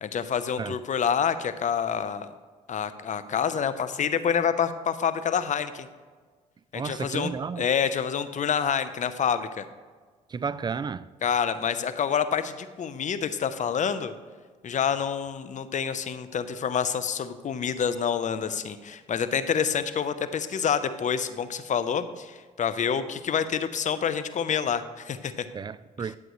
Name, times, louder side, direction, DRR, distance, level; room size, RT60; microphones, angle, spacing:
voice 1, 0.0-2.3 2.7-5.9 6.7-7.3 7.6-9.6 11.2-14.1 14.6-25.5, left 7 dB, 50° left, 0.7 m, -27 dB
voice 2, 6.7-7.7 10.3-11.1 25.5-26.2, right 5 dB, 25° right, 0.4 m, -32 dB
11.5 x 7.6 x 3.1 m
supercardioid pair, 65°, 17 cm